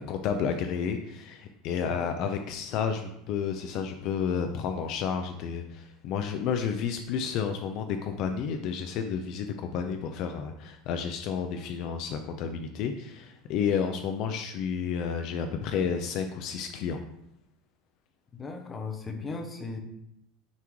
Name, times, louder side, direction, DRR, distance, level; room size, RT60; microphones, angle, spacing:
voice 1, 0.0-17.0, left 7 dB, 45° left, 6 dB, 0.5 m, -31 dB
voice 2, 18.4-19.8, left 4 dB, 15° left, 4 dB, 0.7 m, -37 dB
9.5 x 3.5 x 3.1 m, 0.79 s
supercardioid pair, 160°, 0 cm